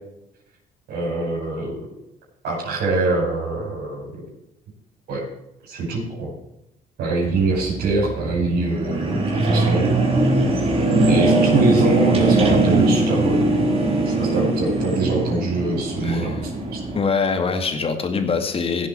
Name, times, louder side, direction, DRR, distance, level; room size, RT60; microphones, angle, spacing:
voice 1, 0.9-1.7 2.4-4.1 5.1-5.2 5.6-6.3 7.0-9.9 11.1-13.4 14.0-16.8, right 3 dB, 75° right, -6 dB, 5.5 m, -24 dB
sound 1, 7.2-17.0, right 2 dB, 35° right, 3.7 m, -20 dB
voice 2, 16.0-16.3 16.9-18.9, left 5 dB, 35° left, 6 dB, 2.2 m, -23 dB
16.5 x 7.7 x 4.5 m, 0.84 s
cardioid pair, 110°, 17 cm